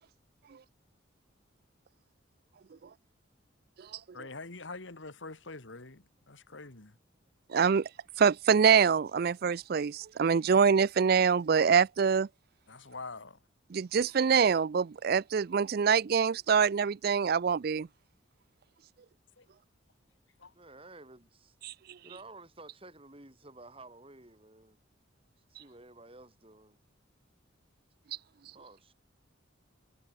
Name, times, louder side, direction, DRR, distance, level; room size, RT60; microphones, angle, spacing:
voice 1, 4.1-7.0 12.7-13.4 19.4-19.5 20.4-20.5, left 3 dB, 70° left, 2.1 m, -45 dB
voice 2, 7.5-7.9 8.2-12.3 13.7-17.9 21.6-22.0, right 6 dB, 50° right, 0.4 m, -25 dB
voice 3, 20.5-21.6 22.0-24.8 25.5-26.8 28.5-28.9, right 2 dB, 30° right, 6.3 m, -52 dB
head